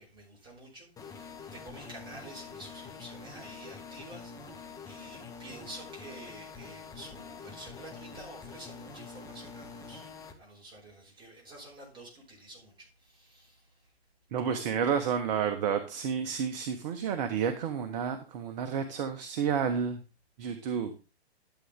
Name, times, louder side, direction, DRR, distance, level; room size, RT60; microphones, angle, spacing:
voice 1, 0.0-13.9, right 1 dB, 15° right, -3 dB, 5.9 m, -49 dB
sound 1, 1.0-10.3, left 5 dB, 10° left, 1.2 m, -46 dB
voice 2, 14.3-20.0 20.4-20.9, right 7 dB, 40° right, 7 dB, 1.3 m, -30 dB
12.5 x 7.9 x 3.7 m, 0.30 s
hypercardioid pair, 130°, 33 cm